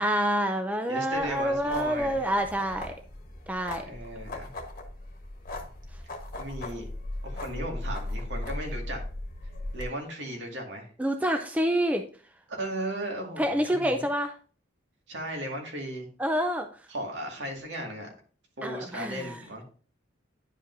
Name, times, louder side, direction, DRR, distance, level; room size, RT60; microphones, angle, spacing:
voice 1, 0.0-2.9 3.5-3.9 11.0-12.0 13.4-14.3 16.2-16.7 18.6-19.4, equal, 10° right, 6 dB, 0.4 m, -27 dB
voice 2, 0.9-2.2 3.8-4.5 6.4-6.8 7.2-9.0 9.7-10.9 12.6-14.0 15.1-16.1 16.9-18.1 18.6-19.6, right 1 dB, 70° right, 1 dB, 2.0 m, -36 dB
sound 1, 1.1-9.8, left 1 dB, 50° left, 1.2 m, -38 dB
10.0 x 5.1 x 2.6 m, 0.40 s
head